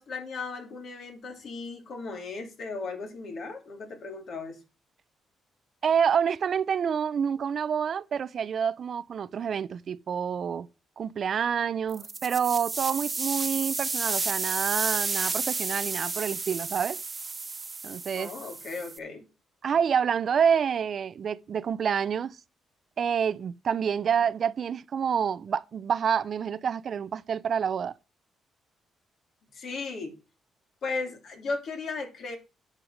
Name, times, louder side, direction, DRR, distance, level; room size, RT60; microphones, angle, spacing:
voice 1, 0.0-4.6 18.1-19.2 29.5-30.1 30.8-32.4, left 3 dB, 60° left, 3.0 m, -36 dB
voice 2, 5.8-10.7 11.0-17.0 17.8-18.3 19.6-22.4 23.0-27.9, right 7 dB, 55° right, 0.6 m, -28 dB
sound 1, 11.9-19.0, right 4 dB, 25° right, 1.1 m, -32 dB
10.0 x 5.4 x 6.5 m
cardioid pair, 90°, 0 cm